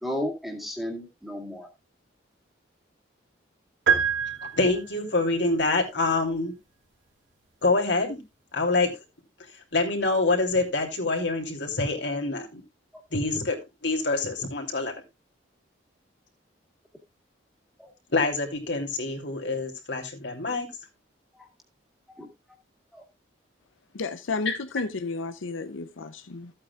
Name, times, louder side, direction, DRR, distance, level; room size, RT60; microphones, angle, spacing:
voice 1, 0.0-1.7 17.8-17.9 22.2-22.3 22.9-23.0, left 1 dB, ahead, 2.1 m, -33 dB
sound 1, 3.9-5.2, right 7 dB, 85° right, 2.8 m, -25 dB
voice 2, 4.5-6.5 7.6-8.2 8.5-8.9 9.7-12.6 13.1-13.6 13.8-14.9 18.1-20.7 24.4-24.6, left 3 dB, 65° left, 2.9 m, -26 dB
voice 3, 23.9-26.5, left 3 dB, 85° left, 0.6 m, -32 dB
14.5 x 8.5 x 2.4 m
head